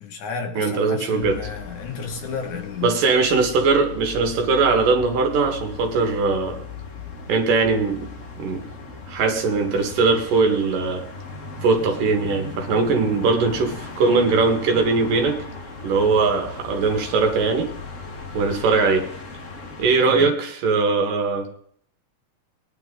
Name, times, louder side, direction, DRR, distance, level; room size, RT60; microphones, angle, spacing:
voice 1, 0.0-2.9 20.1-20.3, left 6 dB, 65° left, 3 dB, 2.8 m, -32 dB
voice 2, 0.6-1.4 2.8-6.6 7.3-8.0 8.4-8.6 9.1-11.1 11.6-15.4 15.8-17.7 18.3-19.0 19.8-21.5, right 4 dB, 75° right, 4 dB, 3.4 m, -20 dB
sound 1, 1.2-19.9, left 4 dB, 45° left, 1.0 m, -37 dB
20.5 x 10.5 x 3.9 m, 0.62 s
omnidirectional pair, 3.9 m